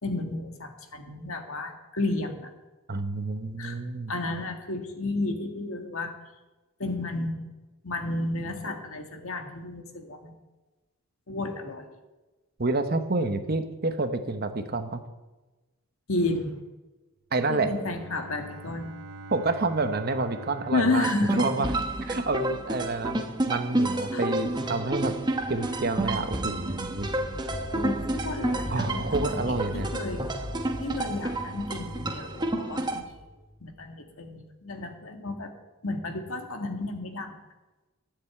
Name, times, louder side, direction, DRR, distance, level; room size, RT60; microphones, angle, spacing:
voice 1, 0.0-2.5 3.6-3.8 4.1-6.1 6.8-7.5 7.8-10.3 11.3-11.9 16.1-16.6 17.5-19.0 20.7-21.6 24.1-24.3 27.7-30.3 30.8-33.3 33.6-35.5 35.8-37.3, left 2 dB, 70° left, 5 dB, 1.7 m, -32 dB
voice 2, 2.9-4.1 12.6-15.0 17.3-17.7 19.3-21.1 21.4-21.7 22.1-25.2 25.5-27.1 28.7-29.9, right 3 dB, 45° right, 9 dB, 1.0 m, -28 dB
Bowed string instrument, 17.5-22.4, right 2 dB, 90° right, 1.1 m, -45 dB
sound 1, 21.0-33.0, right 2 dB, 20° right, 0.9 m, -30 dB
sound 2, 25.0-33.8, left 1 dB, 35° left, 2.5 m, -40 dB
13.0 x 6.8 x 8.7 m, 1.1 s
head